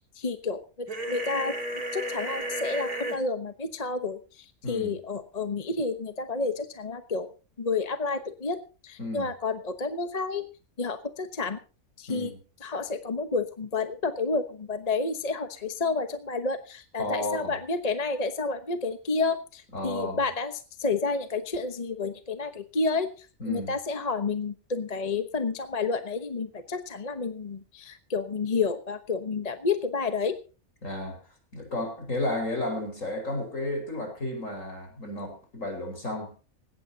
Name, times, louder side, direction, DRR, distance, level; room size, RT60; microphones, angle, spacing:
voice 1, 0.1-1.6 1.9-7.3 7.6-8.6 8.8-10.4 10.8-11.6 12.0-12.3 12.6-30.4, left 4 dB, 30° left, 8 dB, 1.0 m, -30 dB
sound 1, 0.9-3.2, right 1 dB, 85° right, 3.2 m, -33 dB
voice 2, 4.6-5.0 9.0-9.3 12.1-12.3 17.0-17.5 19.7-20.2 23.4-23.7 30.8-31.2 31.5-36.3, left 1 dB, 60° left, 4 dB, 5.3 m, -32 dB
19.0 x 17.0 x 2.8 m, 0.34 s
omnidirectional pair, 1.5 m